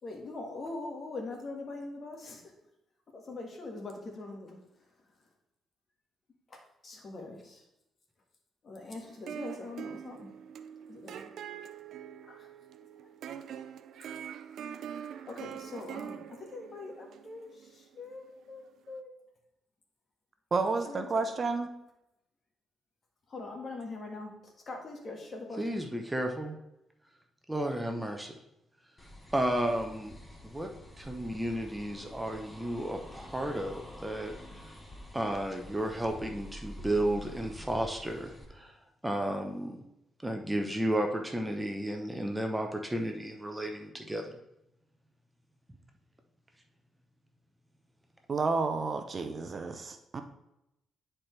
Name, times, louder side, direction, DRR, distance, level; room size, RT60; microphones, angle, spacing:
voice 1, 0.0-2.5 3.1-4.9 6.5-7.7 8.6-10.3 10.9-11.3 12.2-12.5 14.0-14.1 15.3-19.1 20.7-21.3 23.3-25.7, left 3 dB, 45° left, 2 dB, 1.7 m, -43 dB
sound 1, 9.0-18.3, right 8 dB, 75° right, 0.4 m, -44 dB
voice 2, 20.5-21.7 48.3-50.2, right 4 dB, 40° right, 7 dB, 0.7 m, -30 dB
voice 3, 25.6-26.6 27.5-28.3 29.3-30.1 30.4-30.7 31.0-34.7 35.1-38.7 39.0-39.8 40.2-44.3, right 1 dB, 10° right, 3 dB, 0.8 m, -33 dB
sound 2, 29.0-38.4, equal, 15° left, 1.4 m, -48 dB
9.9 x 4.4 x 3.3 m, 0.85 s
cardioid pair, 85°, 0 cm